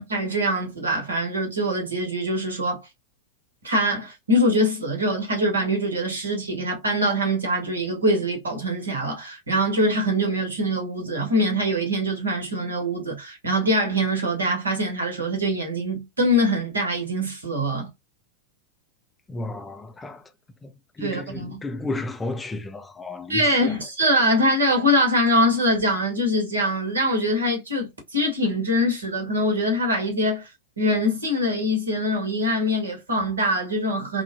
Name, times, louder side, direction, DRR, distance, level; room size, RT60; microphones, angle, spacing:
voice 1, 0.0-2.8 3.6-17.9 21.0-21.6 23.3-30.5 30.8-34.2, equal, 75° right, 1.2 m, -23 dB
voice 2, 19.3-20.3 20.6-23.8, left 2 dB, 15° left, 0.4 m, -33 dB
3.4 x 2.2 x 2.5 m
figure-of-eight pair, 90°, 0 cm